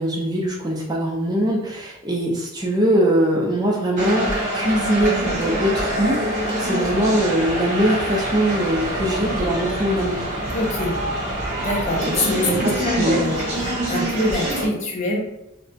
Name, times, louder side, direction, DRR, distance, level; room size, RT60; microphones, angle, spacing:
voice 1, 0.0-4.3 4.5-10.3 12.2-13.2, right 1 dB, 20° right, -2 dB, 0.3 m, -22 dB
sound 1, 4.0-14.7, right 1 dB, 35° right, 0.8 m, -25 dB
voice 2, 10.5-11.0 11.6-13.4 13.9-15.2, left 2 dB, 35° left, -2 dB, 0.5 m, -24 dB
2.2 x 2.0 x 2.6 m, 0.87 s
head